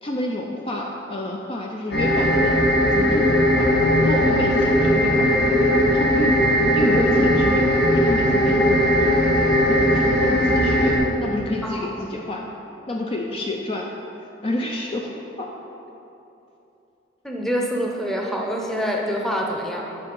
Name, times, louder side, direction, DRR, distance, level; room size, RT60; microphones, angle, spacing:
voice 1, 0.0-3.7 4.0-5.3 5.9-6.4 6.7-9.1 9.7-12.5 12.9-13.9 14.4-15.5, left 1 dB, 30° left, 0 dB, 0.5 m, -29 dB
sound 1, 1.9-11.0, equal, 55° left, 1.6 m, -18 dB
voice 2, 17.2-19.8, equal, ahead, -1 dB, 0.8 m, -26 dB
9.5 x 4.8 x 5.3 m, 3.0 s
head